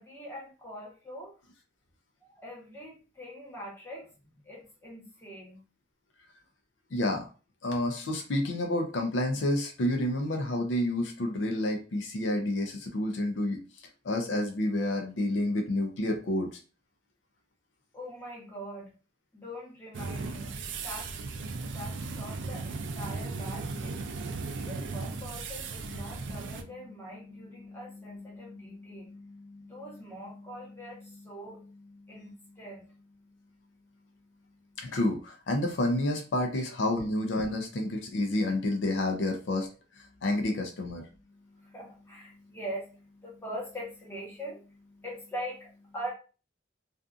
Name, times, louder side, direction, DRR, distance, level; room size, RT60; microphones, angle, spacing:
voice 1, 0.0-1.3 2.2-4.1 4.4-5.6 17.9-18.9 19.3-24.0 24.5-34.8 40.1-40.3 41.1-46.1, equal, 15° left, -4 dB, 1.0 m, -43 dB
voice 2, 6.9-7.3 7.6-13.6 14.0-16.6 34.8-39.7 40.0-41.0, left 1 dB, 75° left, 3 dB, 0.5 m, -29 dB
sound 1, 19.9-26.6, right 3 dB, 75° right, 0.4 m, -36 dB
2.6 x 2.4 x 2.4 m, 0.34 s
head